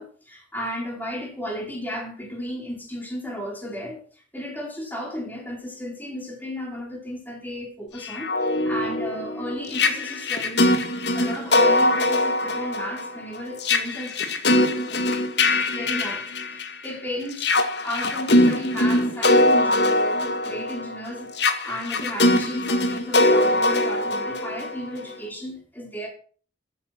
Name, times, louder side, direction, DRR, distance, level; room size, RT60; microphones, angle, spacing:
voice 1, 0.0-4.0 4.3-10.8 11.1-14.1 14.5-14.8 15.7-17.6 17.8-21.3 21.6-26.1, equal, 10° left, 4.5 m, -34 dB
sound 1, 8.0-16.9 17.3-25.1, left 1 dB, 60° left, 2.0 m, -22 dB
14.5 x 8.6 x 6.0 m
head